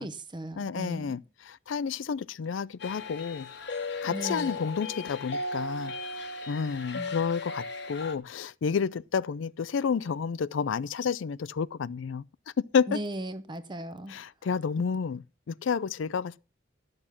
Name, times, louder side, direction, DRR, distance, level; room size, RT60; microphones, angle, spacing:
voice 1, 0.0-1.2 4.1-4.5 6.9-7.1 12.9-14.2, right 1 dB, 25° right, 0.9 m, -37 dB
voice 2, 0.6-3.5 4.0-5.9 6.5-12.2 12.7-13.0 14.1-16.4, left 6 dB, 90° left, 0.4 m, -30 dB
sound 1, 2.8-8.2, left 3 dB, 65° left, 1.1 m, -36 dB
12.0 x 6.6 x 5.8 m
head